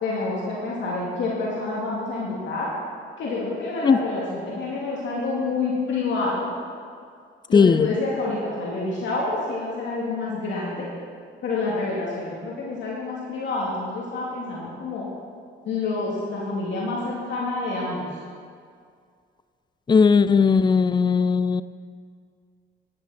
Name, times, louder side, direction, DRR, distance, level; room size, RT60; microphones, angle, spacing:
voice 1, 0.0-2.7 3.2-6.5 7.5-10.9 11.4-15.1 15.6-18.1, left 3 dB, 70° left, -5 dB, 2.6 m, -28 dB
voice 2, 7.5-7.9 19.9-21.6, left 5 dB, 20° left, 15 dB, 0.4 m, -17 dB
14.5 x 10.5 x 4.3 m, 2.1 s
cardioid pair, 90°, 20 cm